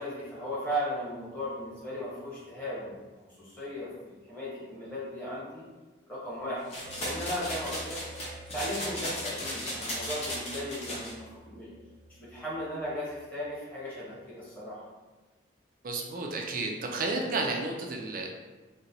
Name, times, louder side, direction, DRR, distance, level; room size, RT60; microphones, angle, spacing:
voice 1, 0.0-3.0 3.4-5.7 6.1-6.7 7.0-8.0 8.5-11.7 12.2-14.9, equal, 10° left, -9 dB, 1.0 m, -36 dB
sound 1, 6.7-11.1, equal, 35° left, 0.7 m, -36 dB
sound 2, 6.8-13.3, right 1 dB, 85° right, 0.8 m, -49 dB
voice 2, 15.8-18.3, right 3 dB, 45° right, 1 dB, 0.4 m, -32 dB
4.0 x 2.2 x 2.6 m, 1.2 s
head